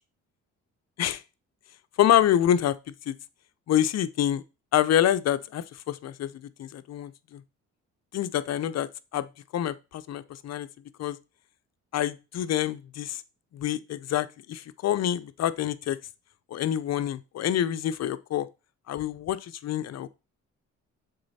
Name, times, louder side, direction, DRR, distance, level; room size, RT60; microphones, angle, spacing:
voice 1, 2.0-2.8 3.1-3.2 3.7-4.4 4.7-6.3 6.6-7.4 8.1-9.3 9.5-10.7 11.0-11.2 11.9-13.2 13.5-16.0 16.5-18.5 18.9-20.1, left 11 dB, 60° left, 0.6 m, -26 dB
6.6 x 4.1 x 4.1 m
cardioid pair, 90°, 30 cm